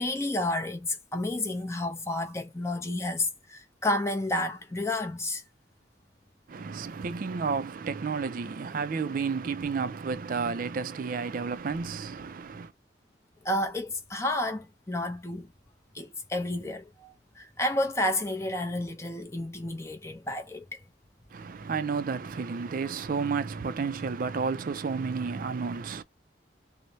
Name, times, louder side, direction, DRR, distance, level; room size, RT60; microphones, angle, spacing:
voice 1, 0.0-5.4 13.4-15.5 15.9-20.8, left 1 dB, 15° left, 0.6 m, -31 dB
voice 2, 6.5-12.7 21.3-26.0, right 5 dB, 45° right, 0.4 m, -31 dB
3.1 x 2.1 x 2.7 m
head